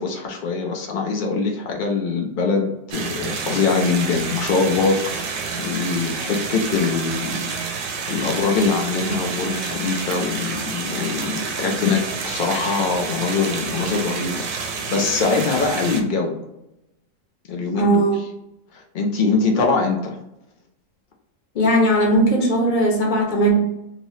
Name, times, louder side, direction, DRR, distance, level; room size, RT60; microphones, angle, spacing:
voice 1, 0.0-7.5 8.1-16.4 17.5-18.3 18.7-20.2, left 4 dB, 80° left, 2 dB, 0.4 m, -23 dB
sound 1, 2.9-16.0, right 5 dB, 80° right, 1.0 m, -29 dB
voice 2, 17.8-18.1 21.5-23.5, right 1 dB, 45° left, 0 dB, 0.7 m, -18 dB
2.9 x 2.7 x 3.0 m, 0.88 s
omnidirectional pair, 1.4 m